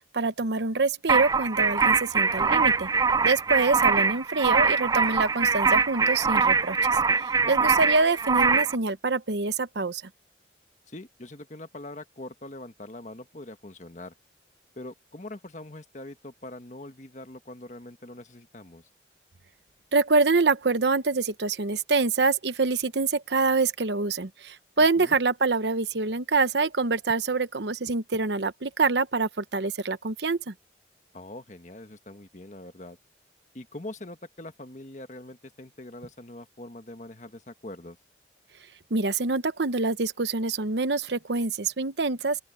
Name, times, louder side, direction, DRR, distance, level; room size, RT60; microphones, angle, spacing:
voice 1, 0.1-2.9 3.2-6.8 7.2-10.0 19.9-30.5 38.9-42.4, right 3 dB, 75° right, 1.0 m, -25 dB
sound 1, 1.1-8.8, right 5 dB, 20° right, 0.3 m, -23 dB
voice 2, 7.4-7.7 10.9-14.1 14.8-18.9 24.8-25.1 31.1-33.0 33.5-38.0, left 1 dB, 40° left, 1.5 m, -43 dB
open air
head